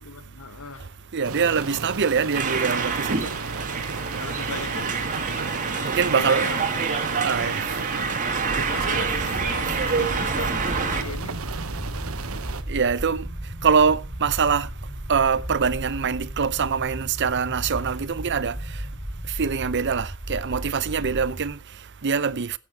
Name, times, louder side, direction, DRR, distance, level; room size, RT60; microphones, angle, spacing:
voice 1, 0.0-1.1 3.1-3.6 4.2-5.1 6.0-6.6 7.3-7.6 8.5-11.4, left 4 dB, 90° left, 1.5 m, -38 dB
voice 2, 0.8-3.3 3.7-4.2 5.8-6.5 7.2-7.8 8.5-8.7 12.6-18.9 19.2-22.6, right 6 dB, 55° right, 0.7 m, -24 dB
sound 1, 1.2-12.6, right 4 dB, 85° right, 1.1 m, -34 dB
sound 2, 2.3-11.0, right 5 dB, 35° right, 1.9 m, -27 dB
sound 3, 8.3-21.6, right 1 dB, 20° right, 2.3 m, -35 dB
16.0 x 8.6 x 4.6 m
head